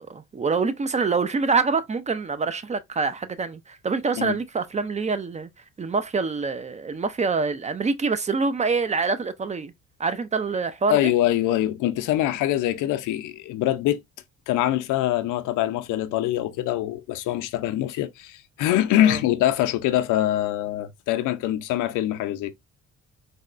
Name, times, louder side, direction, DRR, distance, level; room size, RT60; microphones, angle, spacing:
voice 1, 0.0-5.5 5.8-9.7 10.0-11.1 19.0-19.2, right 4 dB, 25° right, 0.4 m, -25 dB
voice 2, 10.9-14.0 14.5-22.5, left 13 dB, 90° left, 0.5 m, -24 dB
4.0 x 2.2 x 2.4 m
cardioid pair, 90°, 30 cm